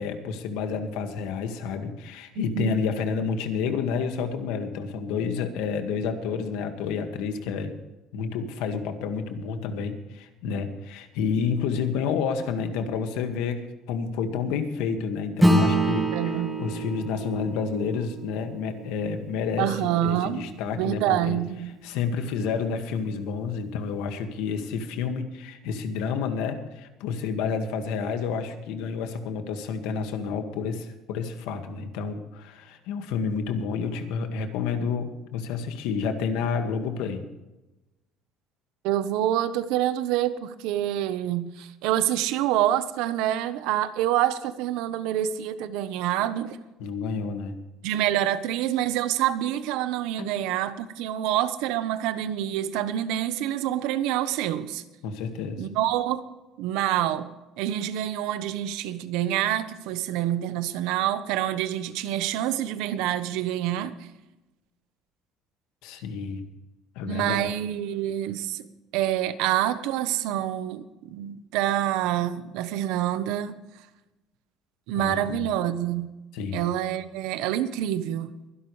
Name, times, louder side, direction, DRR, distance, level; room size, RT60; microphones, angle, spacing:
voice 1, 0.0-7.7 8.1-21.4 21.8-37.3 46.8-47.5 50.2-50.3 55.0-55.7 65.8-66.5 67.0-67.5 74.9-75.5 76.3-76.6, left 6 dB, 90° left, 2.0 m, -30 dB
voice 2, 2.4-2.8 16.1-16.6 19.6-20.5 20.7-21.7 38.8-46.6 47.8-54.8 55.6-56.2 56.6-57.3 57.6-64.1 67.1-68.7 68.9-73.6 74.9-76.1 76.5-78.3, right 12 dB, 80° right, 1.1 m, -27 dB
Acoustic guitar / Strum, 15.4-20.2, right 1 dB, 5° right, 1.6 m, -26 dB
23.5 x 11.5 x 3.3 m
cardioid pair, 175°, 0 cm